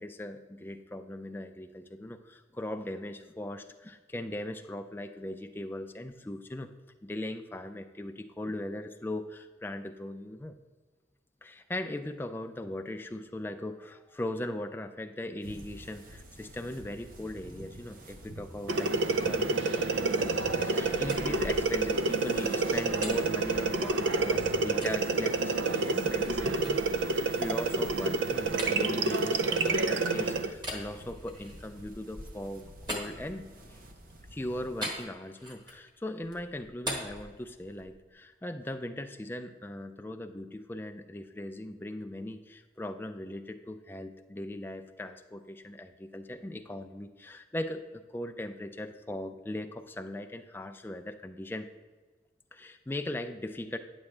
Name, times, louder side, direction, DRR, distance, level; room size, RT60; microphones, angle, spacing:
voice 1, 0.0-6.7 7.0-10.6 11.4-33.8 34.3-51.7 52.5-53.8, left 1 dB, 10° left, 7 dB, 0.3 m, -39 dB
sound 1, 15.4-35.1, right 1 dB, 50° right, 0.7 m, -49 dB
sound 2, 18.7-30.5, right 3 dB, 90° right, 0.4 m, -28 dB
sound 3, 20.8-24.2 24.8-25.0 25.6-30.0 30.6-33.8 34.8-35.9 36.2-38.0, equal, 25° right, 1.3 m, -42 dB
9.6 x 7.1 x 3.3 m, 1.4 s
head